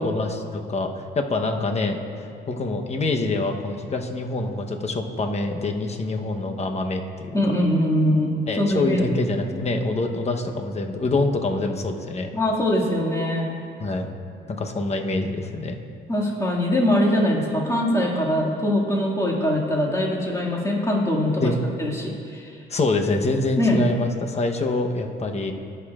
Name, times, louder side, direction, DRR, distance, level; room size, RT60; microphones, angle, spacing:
voice 1, 0.0-7.3 8.5-12.3 13.8-14.1 14.5-15.8 21.4-21.6 22.7-25.5, left 2 dB, 35° left, 4 dB, 0.9 m, -25 dB
voice 2, 7.3-9.2 9.5-9.6 12.3-13.5 16.1-21.5 21.8-22.6 23.6-23.8, left 1 dB, 15° left, -3 dB, 2.1 m, -22 dB
20.0 x 6.8 x 2.4 m, 2.4 s
cardioid pair, 90°, 20 cm